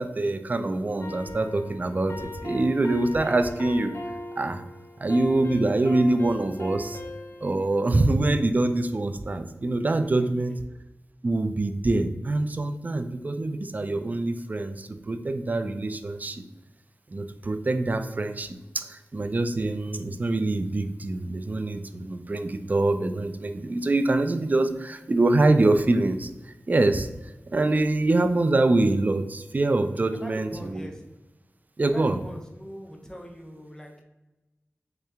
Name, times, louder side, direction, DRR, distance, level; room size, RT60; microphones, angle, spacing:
voice 1, 0.0-3.9 4.4-4.6 5.0-7.0 7.4-10.6 11.2-16.4 17.1-30.9 31.8-32.2, right 2 dB, 35° right, 8 dB, 0.3 m, -25 dB
sound 1, 1.0-8.3, left 1 dB, 55° left, 0.7 m, -38 dB
voice 2, 10.0-10.6 30.1-31.0 31.8-34.0, equal, 15° left, 2 dB, 0.7 m, -42 dB
3.2 x 2.8 x 3.4 m, 1.1 s
wide cardioid pair, 55°, 5 cm